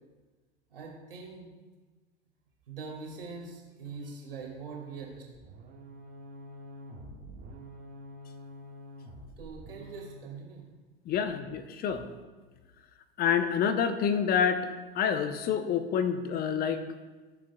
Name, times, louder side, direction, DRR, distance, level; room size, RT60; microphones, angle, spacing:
voice 1, 0.7-1.6 2.7-5.2 9.4-10.7, right 4 dB, 70° right, -1 dB, 2.2 m, -43 dB
sound 1, 5.3-10.2, equal, 30° right, 1.7 m, -47 dB
voice 2, 11.1-12.0 13.2-14.7 14.9-16.8, left 7 dB, 30° left, 10 dB, 0.9 m, -27 dB
15.0 x 7.5 x 2.3 m, 1.3 s
figure-of-eight pair, 80°, 29 cm